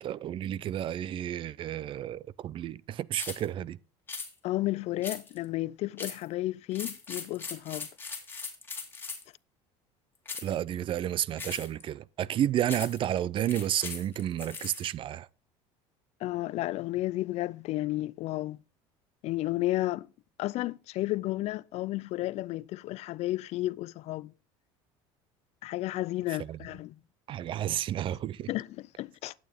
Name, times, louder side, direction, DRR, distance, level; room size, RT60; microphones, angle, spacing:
voice 1, 0.0-3.8 10.4-15.3 26.5-26.6 27.3-28.5, right 11 dB, 40° right, 0.4 m, -31 dB
sound 1, 3.2-3.5 4.1-4.3 5.0-5.5 6.0-6.3 6.7-9.3 10.3-10.6 11.4-11.8 12.7-13.1 13.5-14.9, left 4 dB, 15° left, 2.5 m, -39 dB
voice 2, 4.4-7.9 16.2-18.6 19.2-20.1 20.4-24.3 25.6-27.0 28.5-29.3, left 17 dB, 55° left, 0.4 m, -32 dB
11.5 x 8.8 x 3.5 m
cardioid pair, 120°, 13 cm